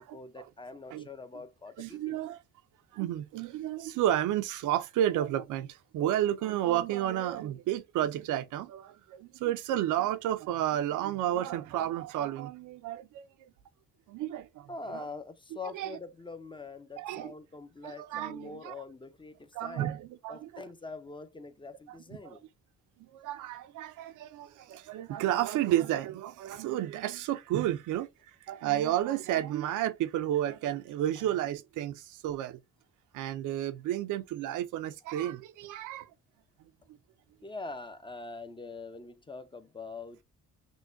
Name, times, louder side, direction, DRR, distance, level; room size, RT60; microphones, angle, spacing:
voice 1, 0.0-2.2 14.7-19.9 20.3-22.5 37.4-40.2, left 3 dB, 15° left, 0.5 m, -44 dB
voice 2, 1.8-2.4 2.9-13.5 14.1-15.0 15.7-15.9 17.0-17.3 17.8-18.7 19.5-20.7 21.9-22.0 22.2-22.4 23.0-28.1 28.5-32.6 33.1-36.1 36.9-37.0, right 12 dB, 85° right, 0.5 m, -31 dB
6.2 x 2.2 x 2.6 m
cardioid pair, 90°, 30 cm